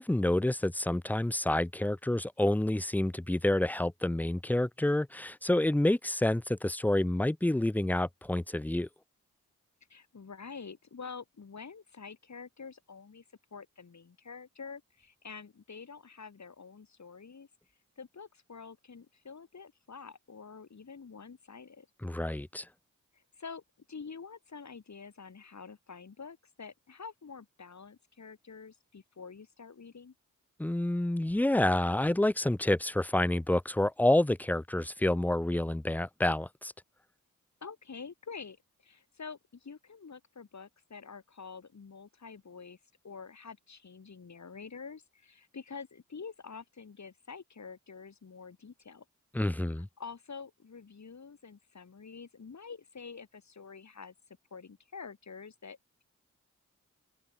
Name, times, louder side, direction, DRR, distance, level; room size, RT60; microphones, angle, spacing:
voice 1, 0.0-8.9 22.0-22.7 30.6-36.7 49.3-49.9, left 1 dB, 5° left, 0.6 m, -28 dB
voice 2, 9.9-13.2 13.5-17.5 18.0-21.9 23.1-23.6 23.9-30.1 37.6-38.6 38.8-42.8 43.0-49.0 50.0-54.1 54.5-56.0, left 5 dB, 55° left, 2.6 m, -47 dB
cardioid pair, 40°, 33 cm